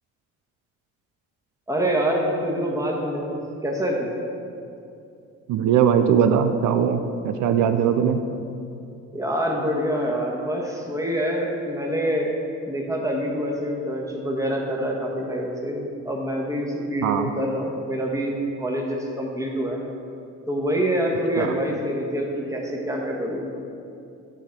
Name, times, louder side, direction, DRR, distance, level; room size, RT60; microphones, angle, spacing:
voice 1, 1.7-4.1 9.1-12.3 12.7-19.8 20.5-23.5, equal, 10° right, -1 dB, 1.4 m, -26 dB
voice 2, 5.5-8.2 17.0-17.3 21.4-21.5, right 8 dB, 75° right, 8 dB, 0.5 m, -20 dB
8.3 x 4.9 x 5.9 m, 2.6 s
cardioid pair, 90°, 30 cm